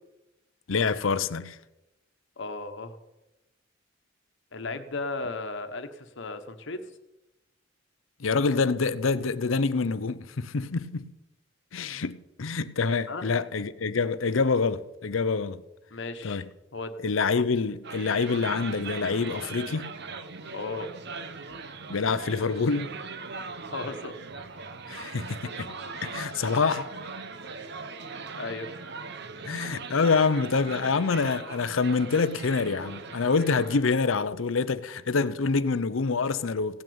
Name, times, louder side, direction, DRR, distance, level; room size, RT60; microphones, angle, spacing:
voice 1, 0.7-1.6 8.2-11.1 11.7-15.6 16.2-16.5 17.0-19.9 21.9-22.9 24.9-25.7 26.0-26.9 29.4-36.8, left 4 dB, 90° left, 0.7 m, -26 dB
voice 2, 2.4-3.0 4.5-6.8 13.1-13.3 15.9-16.4 16.7-16.9 20.5-20.9 23.7-24.1 28.4-28.9, left 3 dB, 65° left, 1.2 m, -35 dB
sound 1, 17.8-33.8, right 4 dB, 60° right, 1.0 m, -40 dB
17.0 x 6.4 x 8.7 m
head